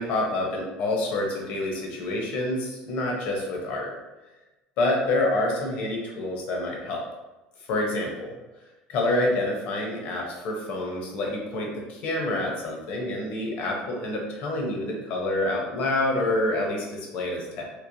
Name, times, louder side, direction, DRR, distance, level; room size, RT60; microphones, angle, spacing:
voice 1, 0.0-3.9 4.8-7.0 7.7-8.4 8.9-17.6, left 1 dB, 60° left, -1 dB, 0.7 m, -27 dB
3.0 x 2.0 x 2.6 m, 1.1 s
cardioid pair, 130°, 3 cm